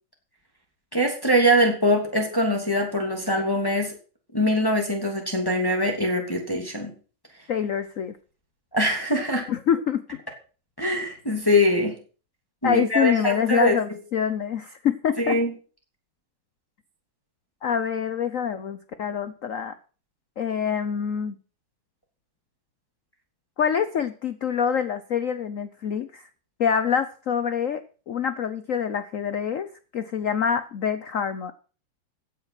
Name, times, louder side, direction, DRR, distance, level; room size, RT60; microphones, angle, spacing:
voice 1, 0.9-3.9 4.3-6.9 8.7-9.4 10.8-11.9 12.6-13.7 15.2-15.5, equal, 10° left, 1 dB, 2.9 m, -23 dB
voice 2, 7.5-8.2 9.5-10.2 12.6-15.4 17.6-19.7 20.4-21.4 23.6-26.3 26.6-29.7 29.9-31.5, left 7 dB, 60° left, 12 dB, 0.9 m, -26 dB
15.5 x 9.0 x 5.9 m, 0.39 s
omnidirectional pair, 2.3 m